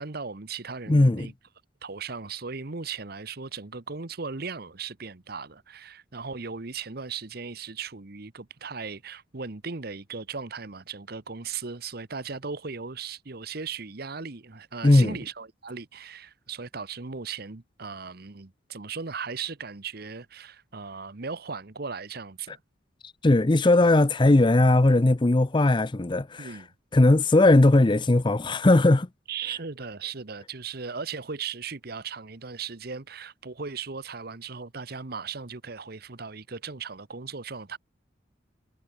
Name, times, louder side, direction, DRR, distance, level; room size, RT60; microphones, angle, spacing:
voice 1, 0.0-1.3 1.8-22.6 26.4-26.7 29.3-37.8, right 5 dB, 55° right, 1.1 m, -37 dB
voice 2, 0.9-1.3 14.8-15.1 23.2-26.5 26.9-29.1, left 2 dB, 25° left, 0.6 m, -19 dB
head